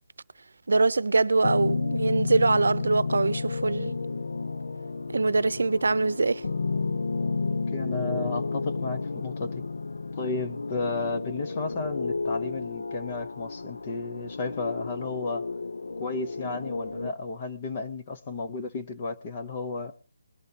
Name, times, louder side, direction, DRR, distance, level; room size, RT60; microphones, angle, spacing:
voice 1, 0.7-3.9 5.1-6.5, right 3 dB, 85° right, 0.7 m, -23 dB
sound 1, 1.4-17.1, left 4 dB, 85° left, 0.7 m, -32 dB
voice 2, 7.7-9.6 10.2-15.5 16.0-19.9, left 3 dB, 20° left, 0.8 m, -33 dB
21.5 x 11.5 x 2.8 m
hypercardioid pair, 180°, 0 cm